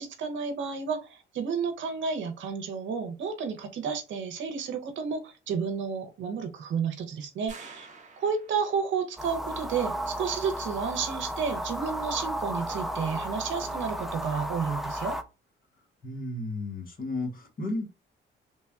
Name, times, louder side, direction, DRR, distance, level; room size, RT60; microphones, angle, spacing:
voice 1, 0.0-7.9 8.2-15.2, right 6 dB, 70° right, 6 dB, 0.7 m, -31 dB
sound 1, 7.5-9.0, right 4 dB, 40° right, 0.7 m, -48 dB
sound 2, 9.2-15.2, equal, ahead, 0.3 m, -34 dB
voice 2, 16.0-17.8, left 2 dB, 45° left, 2 dB, 1.1 m, -33 dB
3.2 x 2.2 x 2.3 m, 0.29 s
cardioid pair, 90°, 20 cm